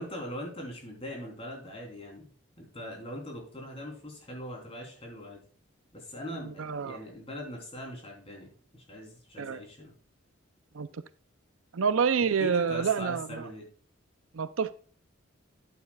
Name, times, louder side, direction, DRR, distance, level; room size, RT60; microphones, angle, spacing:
voice 1, 0.0-2.3 2.6-5.4 5.9-9.9 12.2-13.6, equal, 30° left, 0 dB, 3.6 m, -41 dB
voice 2, 6.3-7.0 9.4-9.6 10.7-11.0 11.7-13.5 14.3-14.7, right 6 dB, 85° right, 14 dB, 0.6 m, -28 dB
11.5 x 9.1 x 2.4 m, 0.42 s
head